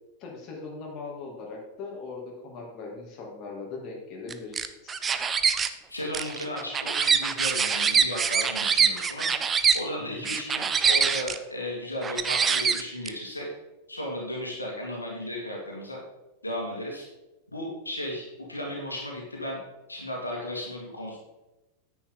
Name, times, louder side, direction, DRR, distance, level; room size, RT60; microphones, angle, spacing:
voice 1, 0.2-5.0 10.0-10.3, left 3 dB, 35° left, -1 dB, 2.6 m, -40 dB
sound 1, 4.3-5.7 6.1-9.8 10.2-11.4 12.0-13.1, right 6 dB, 20° right, 0.6 m, -24 dB
voice 2, 5.9-9.3 9.7-13.5 13.9-16.0 16.4-17.1 17.5-19.6 19.9-21.2, left 1 dB, 80° left, -1 dB, 2.1 m, -35 dB
9.8 x 8.4 x 3.9 m, 1.0 s
figure-of-eight pair, 90°, 0 cm